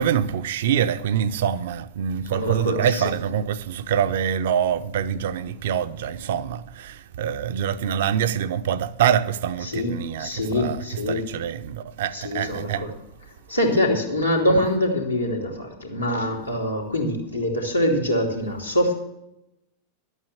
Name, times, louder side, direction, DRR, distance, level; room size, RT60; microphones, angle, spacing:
voice 1, 0.0-12.9, right 9 dB, 55° right, 0.6 m, -25 dB
voice 2, 2.2-3.1 9.6-11.2 12.1-12.9 13.5-18.9, left 1 dB, 85° left, 2.7 m, -24 dB
12.0 x 8.2 x 7.1 m
figure-of-eight pair, 90°, 0 cm